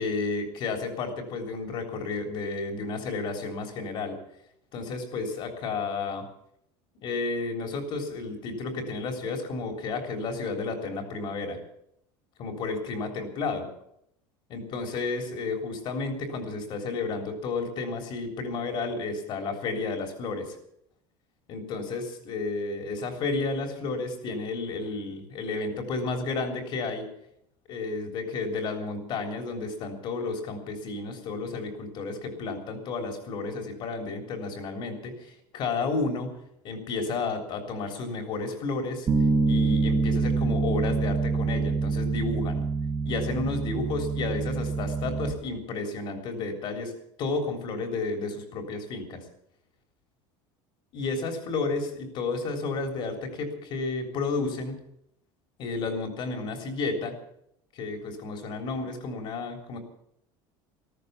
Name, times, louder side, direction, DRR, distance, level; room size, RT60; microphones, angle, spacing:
voice 1, 0.0-4.2 4.7-6.2 7.0-11.6 12.4-13.7 14.5-20.6 21.5-27.0 27.7-36.3 36.6-39.1 39.5-42.6 43.0-46.9 47.2-49.2 50.9-54.8 55.6-57.1 57.7-59.8, left 3 dB, 45° left, 4 dB, 3.5 m, -32 dB
Bass guitar, 39.1-45.3, right 4 dB, 25° right, 1.6 m, -26 dB
14.0 x 14.0 x 7.1 m, 0.74 s
cardioid pair, 150°, 12 cm